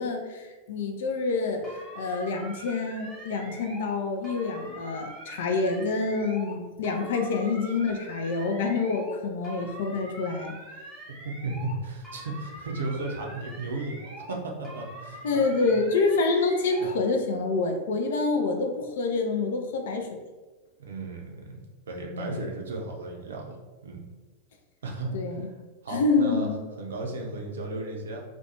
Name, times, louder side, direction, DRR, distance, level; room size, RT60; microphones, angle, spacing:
voice 1, 0.0-10.5 15.2-20.1 22.1-22.4 25.1-25.5 25.9-26.6, left 3 dB, 60° left, 4 dB, 0.4 m, -27 dB
sound 1, 1.6-4.0 4.2-6.6 6.8-9.2 9.4-11.8 12.0-14.4 14.6-17.0, right 1 dB, 10° right, 0.8 m, -44 dB
voice 2, 11.2-15.2 20.8-21.6 21.9-23.6 23.8-24.0 24.8-25.1 25.8-26.5 26.8-28.2, right 2 dB, 65° right, 0 dB, 0.5 m, -34 dB
2.4 x 2.2 x 2.8 m, 1.2 s
figure-of-eight pair, 90°, 0 cm